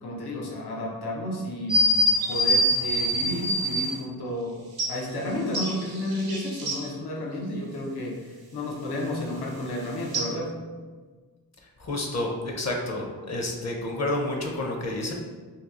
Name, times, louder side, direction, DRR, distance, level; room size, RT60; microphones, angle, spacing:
voice 1, 0.0-1.9 2.3-4.6 4.9-10.5, left 1 dB, 85° left, -2 dB, 0.7 m, -32 dB
sound 1, 1.7-3.9 4.8-4.9 5.5-6.8 10.1-10.2, equal, 70° right, 0.8 m, -24 dB
voice 2, 11.8-15.1, left 1 dB, 45° left, 1 dB, 0.6 m, -29 dB
2.8 x 2.3 x 3.6 m, 1.4 s
cardioid pair, 65°, 38 cm